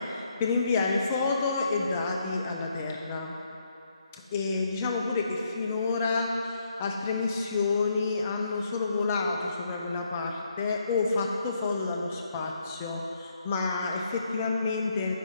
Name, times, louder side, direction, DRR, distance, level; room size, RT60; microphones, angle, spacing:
voice 1, 0.0-3.4 4.3-15.2, left 3 dB, 15° left, -1 dB, 0.4 m, -29 dB
4.8 x 4.7 x 5.5 m, 3.0 s
figure-of-eight pair, 160°, 3 cm